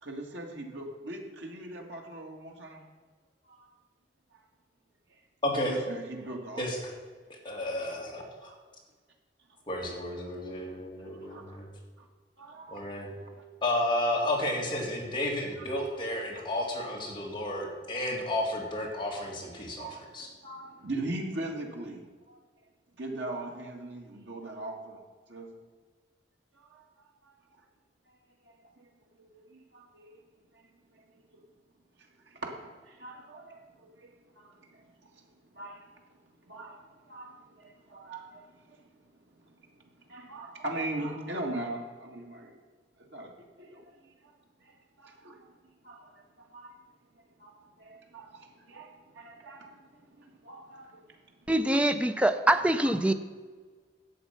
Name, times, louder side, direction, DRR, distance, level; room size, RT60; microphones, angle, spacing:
voice 1, 0.0-2.8 3.5-3.7 4.3-4.4 5.6-6.7 8.4-8.6 11.1-11.6 12.0-12.1 12.4-12.9 13.2-13.3 15.6-15.7 16.4-16.5 18.2-18.3 19.7-22.4 23.0-25.0 25.3-25.5 26.5-26.9 27.2-27.4 28.4-28.9 29.3-30.1 30.5-30.7 30.9-31.0 32.2-35.3 35.5-35.9 36.5-38.9 40.0-42.6 43.1-43.3 43.6-43.9 44.2-44.3 44.6-45.5 45.8-46.8 47.4-51.2 52.8-52.9, right 2 dB, 85° right, 1 dB, 2.0 m, -41 dB
voice 2, 5.4-5.8 6.6-6.9 7.4-8.2 9.7-11.7 12.7-13.1 13.6-20.3, left 1 dB, 30° left, -2 dB, 2.5 m, -32 dB
voice 3, 51.5-53.1, right 1 dB, 5° right, 9 dB, 0.5 m, -24 dB
11.5 x 8.0 x 5.8 m, 1.5 s
head